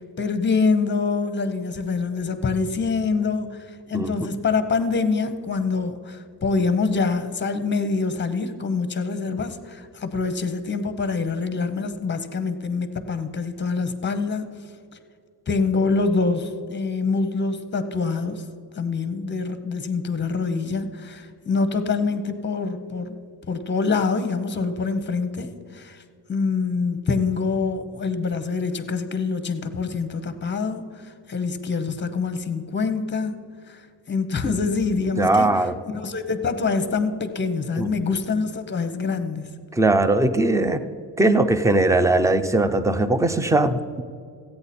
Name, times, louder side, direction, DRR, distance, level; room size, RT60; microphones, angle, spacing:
voice 1, 0.2-3.5 3.9-14.5 15.5-18.4 18.7-23.2 23.5-26.0 26.3-30.8 31.3-33.4 33.7-33.8 34.1-35.5 35.9-39.5, left 4 dB, 25° left, 10 dB, 0.8 m, -25 dB
voice 2, 35.2-35.7 37.8-37.9 39.7-40.8 41.2-44.0, right 2 dB, 10° right, 11 dB, 0.4 m, -20 dB
15.5 x 8.8 x 4.2 m, 2.2 s
wide cardioid pair, 165°, 44 cm